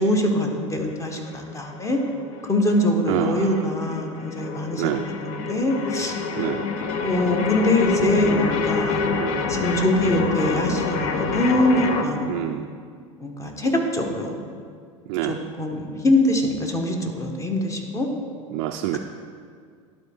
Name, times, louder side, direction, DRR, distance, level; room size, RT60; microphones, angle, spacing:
voice 1, 0.0-2.0 2.4-4.8 5.2-6.2 7.0-9.0 9.5-12.6 13.2-14.3 15.2-18.1 18.9-19.0, left 1 dB, 20° left, 2 dB, 1.2 m, -23 dB
sound 1, 0.7-12.0, left 5 dB, 60° left, 0.7 m, -27 dB
voice 2, 3.1-3.5 4.8-5.1 6.4-6.7 9.1-9.5 12.3-12.7 15.1-15.4 18.5-19.0, right 14 dB, 60° right, 4 dB, 0.4 m, -27 dB
11.5 x 4.3 x 3.6 m, 2.1 s
hypercardioid pair, 80°, 17 cm